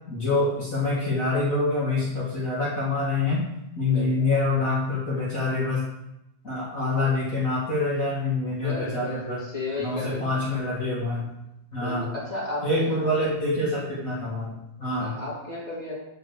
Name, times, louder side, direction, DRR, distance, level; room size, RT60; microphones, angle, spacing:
voice 1, 0.0-3.5 3.8-5.8 6.4-9.4 9.8-11.3 11.7-12.1 12.6-15.1, left 2 dB, 75° left, -8 dB, 0.7 m, -26 dB
voice 2, 3.9-4.3 8.5-10.4 11.8-13.1 15.0-15.9, left 2 dB, 15° left, -6 dB, 1.3 m, -34 dB
6.3 x 4.9 x 6.6 m, 0.86 s
omnidirectional pair, 4.9 m